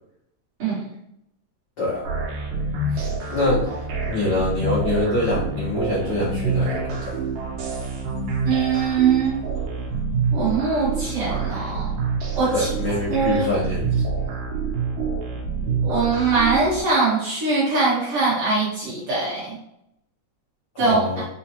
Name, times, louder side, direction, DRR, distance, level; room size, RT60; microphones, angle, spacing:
sound 1, 2.0-16.8, right 4 dB, 75° right, 2.0 m, -27 dB
voice 1, 2.9-3.6 4.1-7.1 12.5-14.0 20.7-21.2, left 2 dB, 80° left, -8 dB, 0.9 m, -25 dB
voice 2, 8.5-9.4 10.3-11.9 12.4-12.7 13.1-13.6 15.8-19.5 20.8-21.0, right 4 dB, 55° right, -7 dB, 1.9 m, -22 dB
4.8 x 2.2 x 2.8 m, 0.80 s
omnidirectional pair, 3.3 m